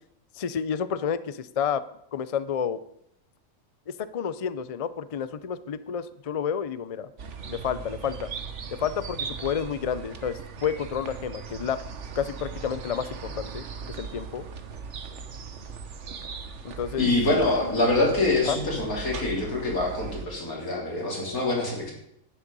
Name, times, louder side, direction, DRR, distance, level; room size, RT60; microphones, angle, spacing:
voice 1, 0.3-1.8 2.1-2.8 3.9-7.1 7.5-8.3 8.8-11.8 12.1-14.4 16.6-17.7 18.4-18.6, left 7 dB, 65° left, 14 dB, 0.3 m, -30 dB
sound 1, 7.2-20.2, right 5 dB, 55° right, 1.3 m, -39 dB
voice 2, 17.0-21.9, left 2 dB, 85° left, -1 dB, 3.7 m, -25 dB
11.5 x 10.0 x 5.4 m, 0.75 s
omnidirectional pair, 1.5 m